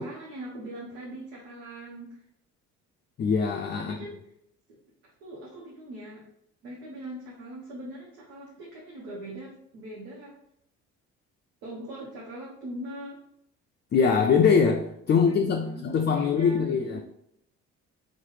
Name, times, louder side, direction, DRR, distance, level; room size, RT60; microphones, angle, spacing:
voice 1, 0.0-2.2 3.8-4.2 5.2-6.2 6.6-10.3 11.6-13.2 15.1-15.9 16.1-17.0, right 1 dB, 80° right, -5 dB, 0.8 m, -41 dB
voice 2, 3.2-3.9 13.9-17.0, left 6 dB, 30° left, 2 dB, 0.4 m, -23 dB
3.0 x 2.1 x 3.2 m, 0.74 s
hypercardioid pair, 60°, 34 cm